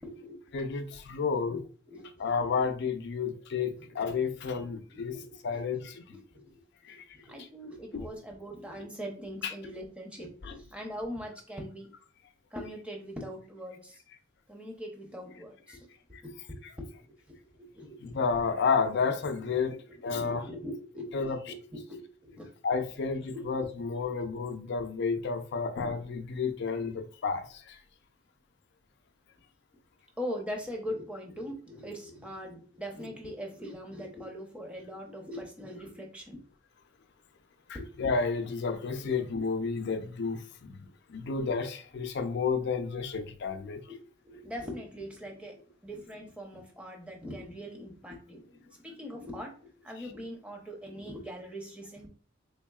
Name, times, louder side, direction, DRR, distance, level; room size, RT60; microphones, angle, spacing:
voice 1, 0.0-0.4 1.1-2.4 3.8-4.0 4.6-5.9 6.1-6.5 6.9-11.9 12.5-14.0 14.5-15.9 16.2-18.7 19.4-22.5 23.3-23.5 23.8-24.2 26.6-26.7 30.2-36.4 37.7-37.9 39.0-39.4 43.6-45.6 45.8-52.1, equal, 5° right, 0.7 m, -42 dB
voice 2, 0.5-1.6 2.2-5.2 5.4-6.0 6.9-7.0 7.9-8.0 9.4-9.5 18.0-19.7 20.0-20.4 21.1-21.4 22.6-27.8 37.7-40.8 41.1-43.8, left 5 dB, 55° left, 0.5 m, -31 dB
3.5 x 3.5 x 2.3 m
head